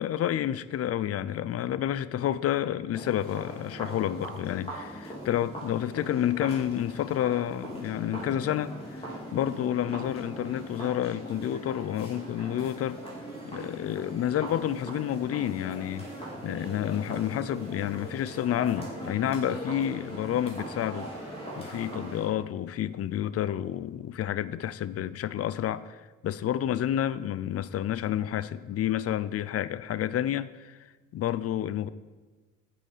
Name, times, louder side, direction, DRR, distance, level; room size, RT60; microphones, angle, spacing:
voice 1, 0.0-13.0 13.4-16.1 16.4-21.1 21.6-30.8 31.1-31.9, left 11 dB, 50° left, 0.5 m, -30 dB
sound 1, 2.9-22.3, right 1 dB, 20° left, 3.4 m, -40 dB
8.0 x 6.9 x 5.6 m
cardioid pair, 90°, 30 cm